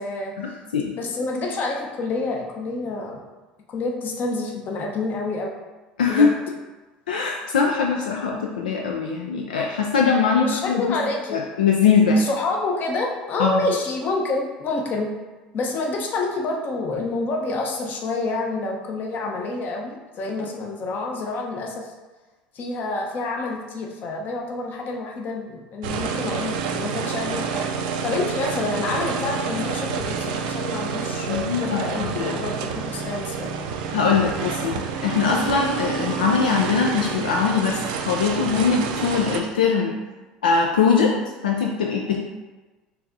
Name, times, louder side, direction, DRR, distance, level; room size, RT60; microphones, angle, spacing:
voice 1, 0.0-0.6 1.0-3.2 3.7-5.5 6.1-6.3 10.3-11.4 12.1-15.1 15.5-21.9 22.5-27.7 28.0-33.5, left 3 dB, 45° left, 0 dB, 0.9 m, -28 dB
voice 2, 6.0-6.3 7.1-10.5 10.8-10.9 11.3-12.2 13.4-13.6 31.3-32.4 33.9-37.8 38.1-39.9 40.4-41.1 41.4-42.2, left 5 dB, 80° left, 0 dB, 0.4 m, -21 dB
sound 1, 25.8-39.4, right 6 dB, 70° right, 0.4 m, -28 dB
4.5 x 3.5 x 2.6 m, 1.2 s
hypercardioid pair, 70°, 4 cm